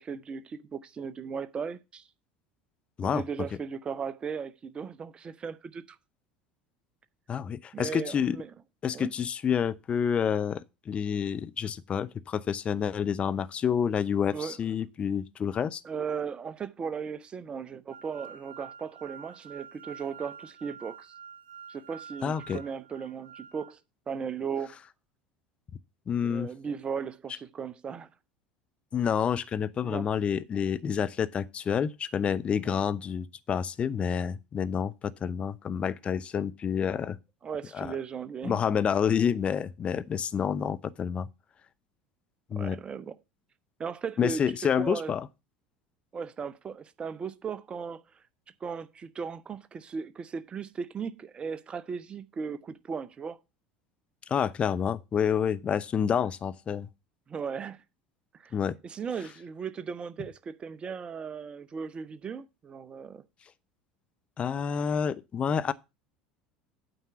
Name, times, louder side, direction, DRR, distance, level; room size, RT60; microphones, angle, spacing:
voice 1, 0.0-2.1 3.0-6.0 7.7-8.5 8.9-9.1 14.3-14.6 15.8-21.1 21.7-23.8 24.1-24.8 26.2-28.1 29.8-30.1 32.7-32.8 37.4-38.6 42.6-43.2 43.8-44.4 44.8-45.1 46.1-48.0 48.6-53.4 56.1-56.3 57.3-57.8 58.4-58.5 58.8-63.2, right 6 dB, 25° right, 0.8 m, -37 dB
voice 2, 7.3-8.4 8.8-15.8 22.2-22.6 26.1-26.5 28.9-37.2 37.7-37.9 38.4-41.3 42.5-42.8 44.2-45.3 54.3-56.9 58.5-58.7 64.4-65.7, left 7 dB, 30° left, 0.7 m, -28 dB
sound 1, 17.9-23.7, right 7 dB, 65° right, 1.0 m, -48 dB
9.0 x 4.5 x 7.0 m
figure-of-eight pair, 70°, 4 cm